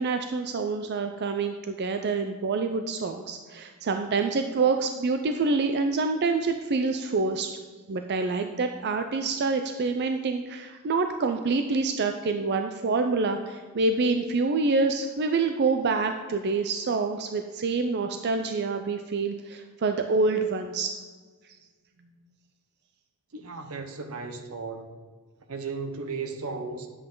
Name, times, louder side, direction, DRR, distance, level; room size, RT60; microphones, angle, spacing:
voice 1, 0.0-7.6 7.9-20.9, right 4 dB, 50° right, 6 dB, 0.5 m, -27 dB
voice 2, 23.3-24.9 25.5-26.9, right 4 dB, 75° right, 7 dB, 1.0 m, -35 dB
9.8 x 7.8 x 3.8 m, 1.5 s
head